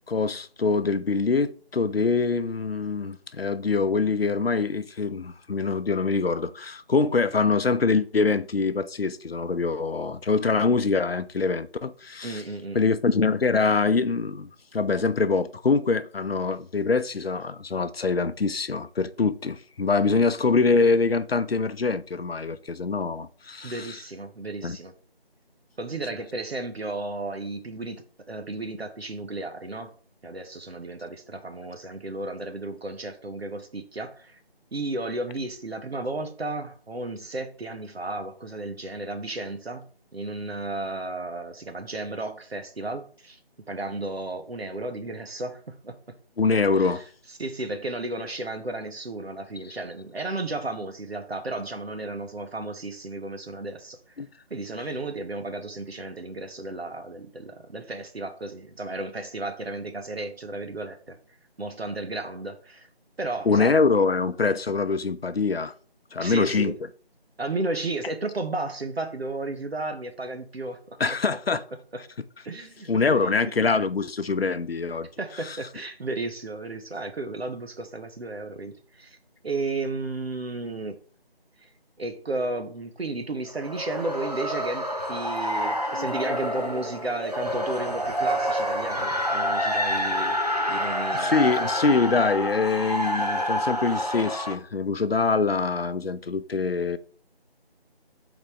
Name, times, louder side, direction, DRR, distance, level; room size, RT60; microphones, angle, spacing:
voice 1, 0.1-12.4 12.7-23.9 24.6-24.8 46.4-47.0 54.2-54.3 63.5-65.7 66.1-66.7 71.0-71.6 72.9-75.1 75.5-75.6 91.1-97.0, left 4 dB, 70° left, 0.6 m, -24 dB
voice 2, 12.2-12.8 20.1-20.3 23.6-24.9 25.8-29.9 30.2-34.4 34.7-39.9 40.1-43.4 43.7-46.0 46.8-54.0 54.5-61.2 61.6-62.9 63.2-63.8 66.2-66.8 67.4-71.0 71.9-72.0 72.4-73.7 75.2-79.2 79.4-81.0 81.6-81.7 82.0-90.4 90.7-91.5, right 2 dB, 75° right, 1.0 m, -33 dB
sound 1, 83.5-94.6, equal, 40° right, 0.6 m, -28 dB
8.1 x 4.0 x 3.1 m
figure-of-eight pair, 180°, 31 cm